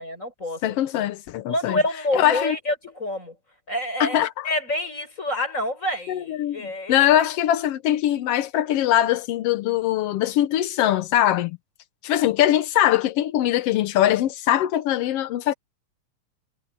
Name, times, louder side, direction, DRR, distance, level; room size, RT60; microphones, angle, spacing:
voice 1, 0.0-0.6 1.5-3.4 3.7-4.2 4.4-7.1, left 1 dB, 20° left, 7.8 m, -27 dB
voice 2, 0.6-1.8 2.1-2.5 4.0-4.5 6.1-11.6 12.0-15.5, left 12 dB, 75° left, 1.4 m, -22 dB
omnidirectional pair, 3.7 m